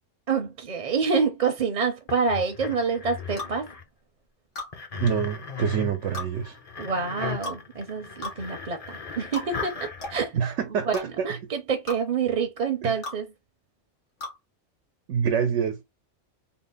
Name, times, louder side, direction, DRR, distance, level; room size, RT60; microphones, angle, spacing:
voice 1, 0.3-3.7 6.8-10.4 10.9-13.3, right 5 dB, 45° right, 0.6 m, -27 dB
sound 1, 2.1-3.8 4.7-10.3, left 6 dB, 40° left, 0.7 m, -37 dB
sound 2, 3.4-3.6 4.6-4.7 6.1-6.3 7.4-7.6 8.2-8.4 9.3-9.5 10.0-10.2 10.9-11.1 11.9-12.0 13.0-13.2 14.2-14.4, left 2 dB, 80° left, 1.7 m, -35 dB
voice 2, 5.0-6.5 10.3-11.3 12.8-13.0 15.1-15.9, right 7 dB, 85° right, 1.0 m, -26 dB
3.9 x 2.0 x 3.8 m
omnidirectional pair, 1.2 m